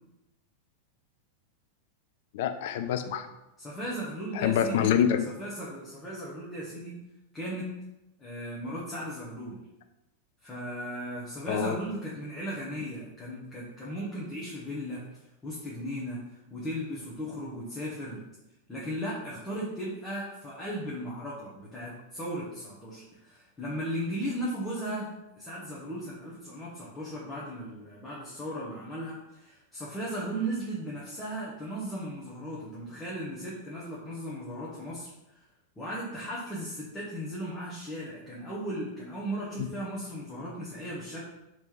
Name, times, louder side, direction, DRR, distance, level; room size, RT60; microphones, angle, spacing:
voice 1, 2.3-3.3 4.4-5.3 11.5-11.8, left 9 dB, 55° left, 7 dB, 0.4 m, -26 dB
voice 2, 3.6-4.9 5.2-7.0 7.3-7.7 8.2-9.6 10.4-18.2 18.7-25.1 25.4-35.4 35.8-41.3, equal, 15° left, -7 dB, 0.9 m, -36 dB
3.4 x 3.0 x 4.5 m, 0.94 s
figure-of-eight pair, 90°, 0 cm